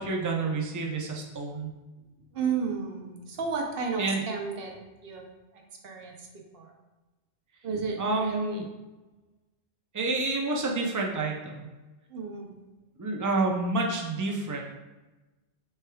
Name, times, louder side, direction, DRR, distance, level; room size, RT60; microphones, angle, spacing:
voice 1, 0.0-1.7 4.0-4.2 8.0-8.6 9.9-11.7 13.0-14.6, right 3 dB, 30° right, 0 dB, 0.3 m, -29 dB
voice 2, 2.3-4.7 5.0-5.2 5.8-6.3 6.5-6.7 7.6-8.6 12.1-12.6, right 5 dB, 60° right, 2 dB, 0.9 m, -32 dB
6.5 x 3.4 x 2.3 m, 1.1 s
omnidirectional pair, 1.2 m